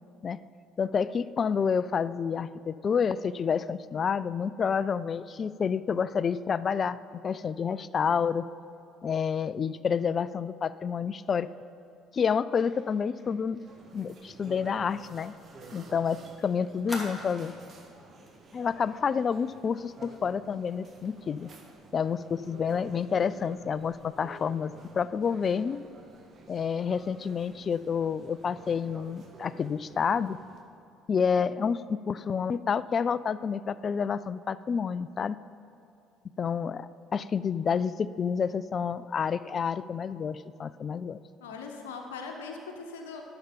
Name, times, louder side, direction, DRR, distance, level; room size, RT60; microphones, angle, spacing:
voice 1, 0.8-7.0 7.2-8.5 9.0-11.5 12.1-13.6 13.9-15.3 15.7-17.5 18.5-21.5 21.9-25.8 26.5-30.4 31.1-35.4 36.4-41.2, left 6 dB, 40° left, 17 dB, 0.3 m, -29 dB
Fire, 12.6-16.0 16.3-16.4 16.9-17.8 18.3-18.4 18.7-19.0, left 1 dB, 5° left, 2.8 m, -45 dB
sound 1, 13.6-30.6, right 2 dB, 40° right, 1.2 m, -51 dB
voice 2, 41.4-43.2, left 4 dB, 75° left, 2 dB, 0.9 m, -40 dB
11.5 x 6.9 x 5.3 m, 2.7 s
figure-of-eight pair, 55°, 0 cm